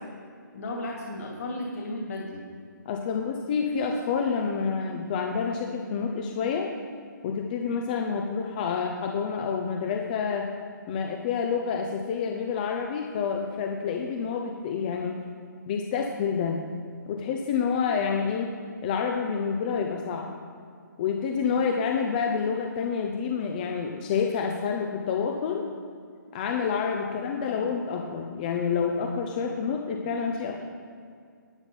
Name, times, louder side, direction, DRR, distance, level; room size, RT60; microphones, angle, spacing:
voice 1, 0.5-2.4 27.0-27.7, left 1 dB, 45° left, -1 dB, 2.5 m, -35 dB
voice 2, 2.8-6.7 7.2-10.5 10.9-15.2 15.7-16.6 17.1-18.5 18.8-20.3 21.0-25.6 26.3-30.7, left 6 dB, 25° left, 2 dB, 0.7 m, -28 dB
11.5 x 8.6 x 5.4 m, 2.2 s
hypercardioid pair, 160°, 11 cm